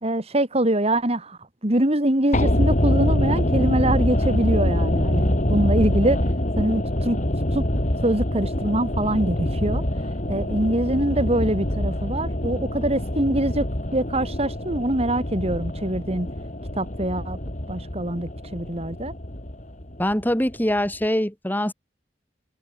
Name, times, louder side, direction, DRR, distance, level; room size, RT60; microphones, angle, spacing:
voice 1, 0.0-6.2 6.6-7.2 7.5-7.6 8.0-9.8 10.3-13.6 13.9-16.3 16.8-17.4 17.7-19.1, right 1 dB, 35° right, 3.0 m, -24 dB
sound 1, 2.3-20.5 20.8-20.9, left 1 dB, 45° left, 3.5 m, -25 dB
voice 2, 20.0-21.7, left 1 dB, 10° left, 4.2 m, -23 dB
head